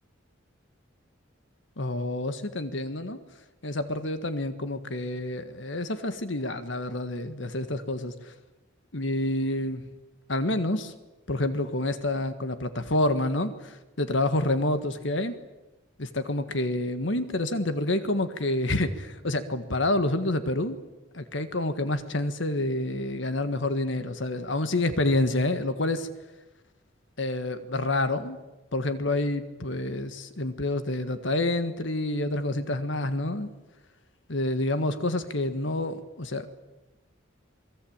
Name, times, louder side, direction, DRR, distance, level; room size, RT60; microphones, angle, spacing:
voice 1, 1.8-3.2 3.6-8.3 8.9-9.8 10.3-10.9 11.3-15.3 16.0-20.8 21.1-26.1 27.2-28.4 28.7-33.5 34.3-36.6, left 1 dB, 65° left, 10 dB, 1.7 m, -28 dB
28.0 x 21.5 x 8.9 m, 1.1 s
head